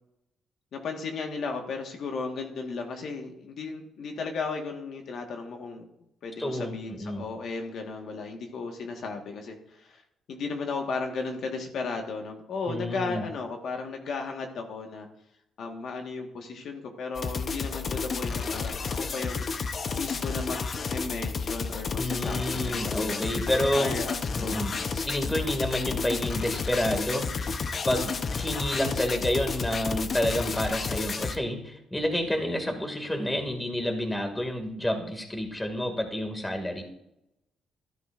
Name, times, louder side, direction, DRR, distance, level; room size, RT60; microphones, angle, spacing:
voice 1, 0.7-5.9 6.2-10.0 10.3-15.1 15.6-19.5 19.9-23.2 23.7-24.7, left 4 dB, 65° left, 3 dB, 1.6 m, -35 dB
voice 2, 6.4-7.2 12.7-13.2 22.0-23.9 24.4-24.7 25.1-27.5 27.8-36.8, left 1 dB, 10° left, 4 dB, 2.2 m, -29 dB
sound 1, 17.1-31.4, left 5 dB, 45° left, 0.8 m, -31 dB
13.0 x 10.5 x 2.6 m, 0.82 s
cardioid pair, 90°, 0 cm